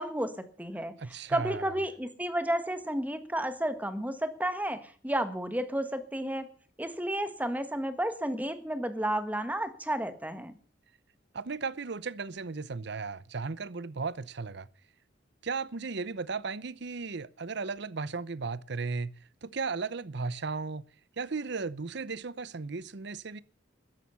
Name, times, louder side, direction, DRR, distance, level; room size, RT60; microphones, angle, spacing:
voice 1, 0.0-0.9 1.3-6.5 6.8-10.5, right 1 dB, 10° right, 1.5 m, -32 dB
voice 2, 1.0-1.8 11.3-14.7 15.4-19.1 19.4-20.9 21.2-23.4, right 4 dB, 60° right, 0.7 m, -35 dB
13.5 x 11.0 x 7.0 m
head